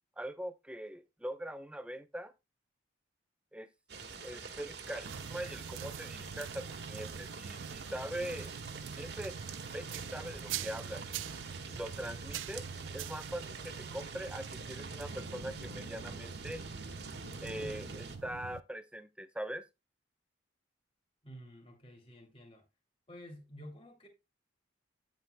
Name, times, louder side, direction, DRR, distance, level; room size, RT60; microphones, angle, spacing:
voice 1, 0.2-2.3 3.5-3.7 4.2-8.6 9.0-9.3 9.7-11.0 11.6-12.6 12.9-16.6 17.4-19.6, right 1 dB, 5° right, 0.7 m, -42 dB
sound 1, 3.9-18.2, right 4 dB, 55° right, 1.6 m, -46 dB
sound 2, 5.0-18.6, right 7 dB, 75° right, 0.4 m, -45 dB
voice 2, 21.2-22.6 23.1-24.1, equal, 30° left, 2.5 m, -51 dB
9.5 x 9.1 x 2.2 m
head